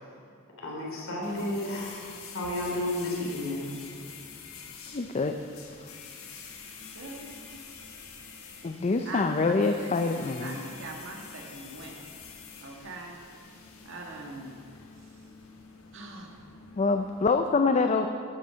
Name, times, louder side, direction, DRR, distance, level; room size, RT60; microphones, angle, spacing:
voice 1, 0.6-2.0 2.3-3.7, left 1 dB, 70° left, -2 dB, 3.1 m, -32 dB
sound 1, 1.2-17.3, left 5 dB, 85° left, 1.3 m, -47 dB
voice 2, 4.9-5.4 8.6-10.6 16.8-18.1, left 4 dB, 35° left, 6 dB, 0.5 m, -25 dB
voice 3, 6.9-7.6 9.1-12.1 12.6-13.3 13.8-14.6 15.1-15.2 15.9-16.5, right 2 dB, 65° right, 0 dB, 1.8 m, -42 dB
12.5 x 7.9 x 5.7 m, 2.4 s
head